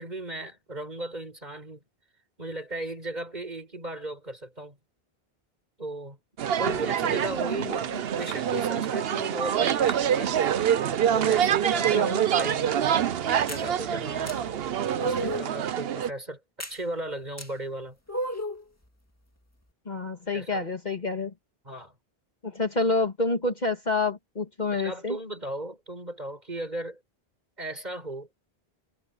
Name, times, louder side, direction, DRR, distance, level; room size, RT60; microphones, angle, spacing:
voice 1, 0.0-1.8 2.4-4.8 5.8-6.2 6.6-7.8 8.1-10.5 11.1-12.7 13.4-18.0 20.3-20.6 21.6-21.9 24.7-27.0 27.6-28.3, right 1 dB, 45° right, 5.4 m, -36 dB
sound 1, 6.4-16.1, right 9 dB, 75° right, 0.9 m, -26 dB
voice 2, 11.9-12.3 19.9-21.3 22.4-25.2, left 3 dB, 45° left, 1.9 m, -28 dB
sound 2, 13.5-13.7 14.3-14.4 15.0-15.5 16.6-16.8 17.4-17.5 18.1-18.6, equal, 15° left, 2.2 m, -32 dB
omnidirectional pair, 1.0 m